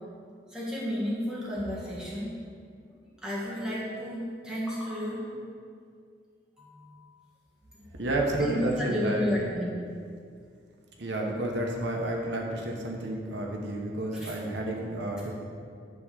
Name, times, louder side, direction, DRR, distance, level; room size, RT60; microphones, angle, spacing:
voice 1, 0.5-2.3 2.9-3.0 3.2-5.3 6.6-7.1 7.8-7.9 8.4-9.8 14.1-14.3, left 1 dB, 5° right, -7 dB, 1.6 m, -32 dB
voice 2, 8.0-9.3 11.0-15.3, right 1 dB, 70° right, 0 dB, 1.1 m, -30 dB
10.5 x 3.6 x 6.8 m, 2.2 s
head